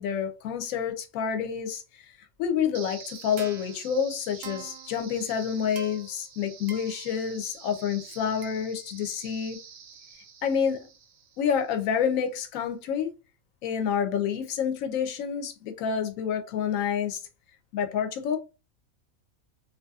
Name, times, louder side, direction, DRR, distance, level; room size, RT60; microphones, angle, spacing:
voice 1, 0.0-1.8 2.4-9.6 10.4-10.9 11.4-13.1 13.6-17.2 17.7-18.4, left 7 dB, 75° left, 0.9 m, -28 dB
sound 1, 2.7-11.8, right 6 dB, 65° right, 0.6 m, -45 dB
2.7 x 2.4 x 2.3 m
omnidirectional pair, 1.5 m